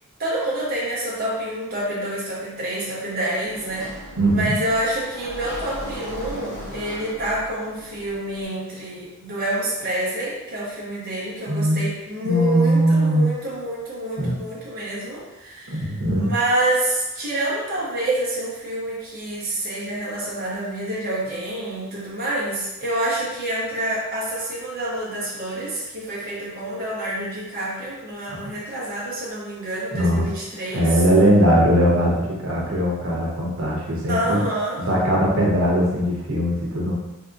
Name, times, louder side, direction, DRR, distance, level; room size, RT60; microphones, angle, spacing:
voice 1, 0.2-31.0 34.1-34.9, right 1 dB, 45° right, -6 dB, 0.7 m, -27 dB
Sliding door, 3.4-8.4, equal, 85° left, 1.1 m, -37 dB
voice 2, 4.2-4.6 11.5-11.8 12.2-13.3 14.2-14.4 15.7-16.3 29.9-30.2 30.7-34.4 34.8-36.9, equal, 80° right, -3 dB, 0.9 m, -20 dB
3.5 x 2.7 x 2.5 m, 0.97 s
head